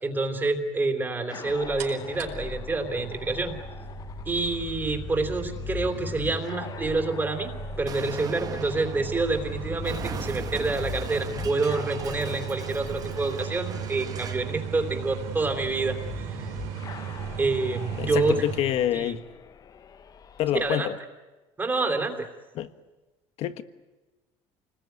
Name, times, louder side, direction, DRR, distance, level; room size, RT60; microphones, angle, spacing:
voice 1, 0.0-3.6 4.2-7.5 7.8-16.5 17.4-18.4 18.9-19.1 20.5-20.9 21.6-22.3, right 3 dB, 15° right, 3.2 m, -27 dB
sound 1, 1.3-20.7, left 7 dB, 30° left, 0.9 m, -41 dB
sound 2, 1.8-18.6, right 8 dB, 85° right, 4.7 m, -37 dB
Explosion, 7.9-14.5, right 7 dB, 30° right, 1.1 m, -41 dB
voice 2, 18.0-19.2 20.4-21.0 22.6-22.7 23.4-23.6, left 12 dB, 55° left, 1.4 m, -27 dB
28.0 x 20.0 x 9.4 m
cardioid pair, 140°, 12 cm